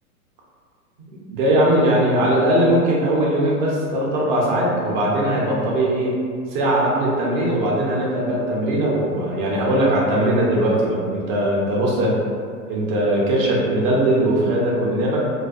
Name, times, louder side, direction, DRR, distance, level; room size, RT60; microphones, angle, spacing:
voice 1, 1.1-6.1 6.5-12.1 12.7-15.2, right 1 dB, 35° right, -3 dB, 0.5 m, -20 dB
2.4 x 2.2 x 2.3 m, 2.1 s
hypercardioid pair, 120°, 46 cm